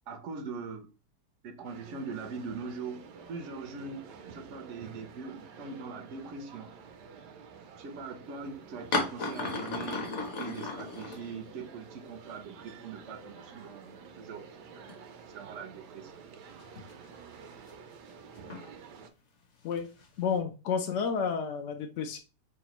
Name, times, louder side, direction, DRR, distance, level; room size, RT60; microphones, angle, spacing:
voice 1, 0.1-0.9 1.4-6.7 7.8-14.5 15.3-16.1, right 4 dB, 65° right, 0.7 m, -42 dB
sound 1, 1.6-19.1, right 6 dB, 80° right, 1.2 m, -50 dB
sound 2, 8.9-11.8 12.0-12.1 13.2-13.3 13.5-14.4 14.9-15.0 16.5-17.7 18.4-18.7 19.7-20.4, left 3 dB, 50° left, 1.0 m, -35 dB
voice 2, 20.2-22.2, left 6 dB, 70° left, 0.7 m, -31 dB
5.8 x 2.2 x 2.9 m
omnidirectional pair, 1.8 m